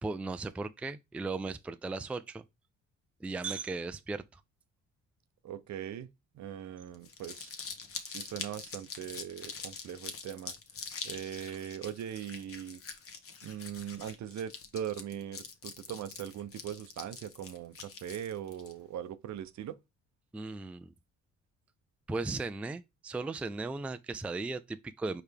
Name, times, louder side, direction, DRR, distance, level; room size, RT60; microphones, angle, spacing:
voice 1, 0.0-2.4 3.2-4.4 20.3-20.9 22.1-25.2, right 3 dB, 5° right, 0.3 m, -37 dB
voice 2, 5.4-6.1 6.3-7.5 8.1-10.5 11.0-12.8 13.4-19.8, right 10 dB, 65° right, 0.6 m, -40 dB
Crumpling crinkling, 6.9-18.7, left 5 dB, 50° left, 1.1 m, -44 dB
4.6 x 3.3 x 3.4 m
cardioid pair, 90°, 30 cm